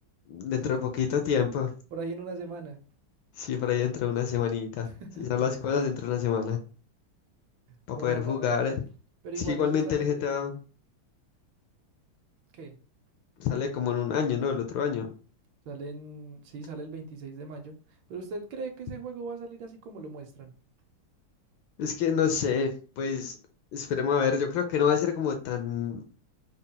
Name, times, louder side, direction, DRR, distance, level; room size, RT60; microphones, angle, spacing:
voice 1, 0.3-1.7 3.4-4.9 5.2-6.6 7.9-8.8 9.5-10.6 13.4-15.1 21.8-23.4 23.7-26.0, left 7 dB, 75° left, 1.2 m, -27 dB
voice 2, 1.9-2.8 4.8-5.4 7.7-8.5 9.2-10.3 12.5-12.8 15.7-17.7 18.1-20.5, right 3 dB, 70° right, 1.3 m, -39 dB
4.1 x 2.1 x 3.7 m
omnidirectional pair, 2.4 m